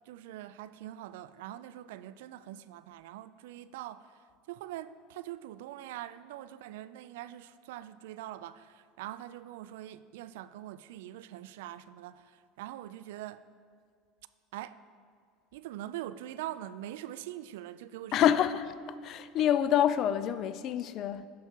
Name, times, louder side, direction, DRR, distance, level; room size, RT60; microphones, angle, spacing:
voice 1, 0.1-13.4 14.5-14.8 15.5-18.3, right 13 dB, 85° right, 0.3 m, -43 dB
voice 2, 18.1-21.3, left 10 dB, 40° left, 0.3 m, -27 dB
9.4 x 5.7 x 4.5 m
supercardioid pair, 145°, 0 cm